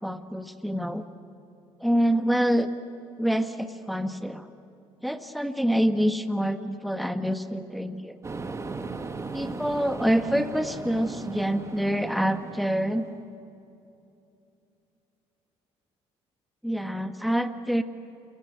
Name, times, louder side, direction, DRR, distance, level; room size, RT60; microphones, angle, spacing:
voice 1, 0.0-1.0 1.8-2.7 3.2-4.5 5.0-8.2 9.3-13.1 16.6-17.8, equal, ahead, 8 dB, 1.2 m, -26 dB
sound 1, 8.2-13.2, right 3 dB, 25° right, 1.5 m, -37 dB
28.5 x 21.5 x 7.8 m, 2.7 s
supercardioid pair, 80°, 12 cm